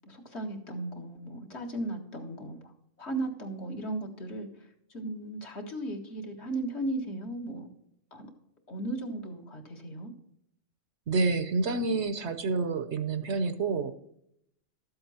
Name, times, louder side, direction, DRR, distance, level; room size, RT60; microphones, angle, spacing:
voice 1, 0.0-2.7 3.0-7.7 8.1-8.3 8.7-10.1, right 2 dB, 55° left, 2 dB, 1.8 m, -36 dB
voice 2, 11.1-13.9, right 3 dB, 60° right, 10 dB, 1.0 m, -28 dB
13.0 x 7.9 x 4.2 m, 0.74 s
omnidirectional pair, 1.4 m